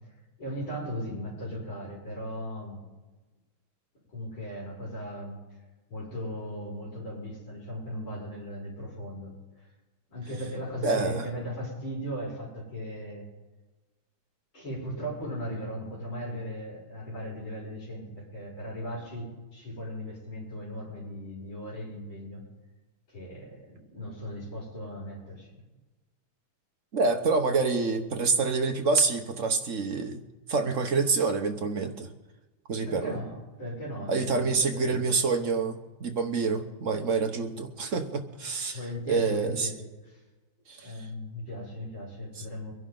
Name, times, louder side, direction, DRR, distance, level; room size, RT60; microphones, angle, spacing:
voice 1, 0.4-2.8 4.1-5.4 5.9-9.7 10.1-13.2 14.5-22.4 23.1-25.6 32.9-35.0 38.5-40.2 40.8-42.7, equal, 65° left, -5 dB, 7.1 m, -37 dB
voice 2, 10.8-11.2 26.9-30.2 30.5-32.1 32.7-33.2 34.1-38.8 39.1-39.7 40.7-40.9 42.4-42.5, right 4 dB, 45° right, 5 dB, 1.2 m, -27 dB
24.0 x 11.0 x 3.9 m, 1.2 s
omnidirectional pair, 2.3 m